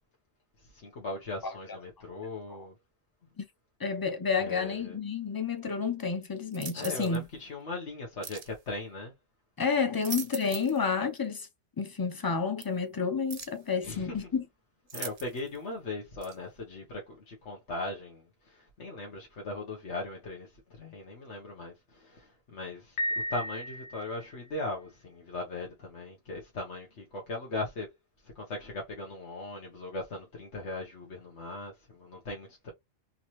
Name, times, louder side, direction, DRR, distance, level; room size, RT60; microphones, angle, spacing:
voice 1, 0.7-2.7 4.4-5.0 6.7-9.1 9.9-10.0 13.8-14.2 14.9-20.5 20.8-23.0 23.3-27.9 28.3-32.7, left 2 dB, 85° left, 1.4 m, -39 dB
voice 2, 3.8-7.2 9.6-11.5 11.8-14.4, left 5 dB, 25° left, 0.5 m, -30 dB
sound 1, 6.5-7.2 8.2-8.5 9.8-10.8 11.2-11.3 12.6-12.7 13.3-13.6 14.9-15.6 16.2-16.4, right 6 dB, 45° right, 0.5 m, -41 dB
Piano, 23.0-24.4, left 1 dB, 55° left, 0.8 m, -34 dB
3.8 x 2.8 x 3.0 m
omnidirectional pair, 1.1 m